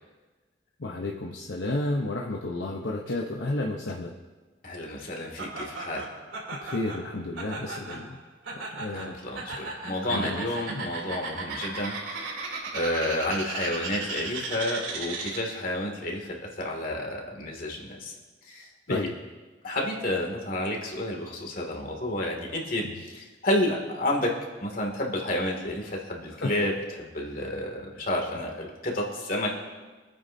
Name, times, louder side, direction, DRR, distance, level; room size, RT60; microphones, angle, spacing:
voice 1, 0.8-4.1 6.6-8.2 8.8-9.1 10.0-10.9 18.9-19.1 26.4-26.5 28.0-28.1, left 2 dB, 65° left, 0 dB, 1.0 m, -32 dB
voice 2, 4.6-6.1 8.9-18.1 18.4-19.0 19.6-24.3 24.6-29.5, left 1 dB, 50° left, 0 dB, 2.4 m, -30 dB
Laughter, 5.4-15.6, right 3 dB, 85° right, 3.2 m, -36 dB
26.0 x 9.4 x 2.8 m, 1.3 s
head